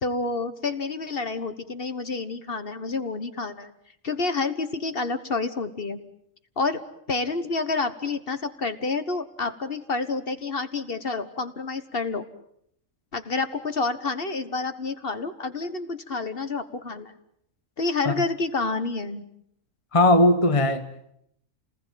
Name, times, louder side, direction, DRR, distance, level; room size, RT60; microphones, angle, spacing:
voice 1, 0.0-3.7 4.0-6.0 6.6-6.8 7.1-12.3 13.1-17.1 17.8-19.2, left 3 dB, 45° left, 1.6 m, -29 dB
voice 2, 19.9-21.1, left 1 dB, 25° left, 1.1 m, -20 dB
29.5 x 19.5 x 9.1 m
omnidirectional pair, 1.4 m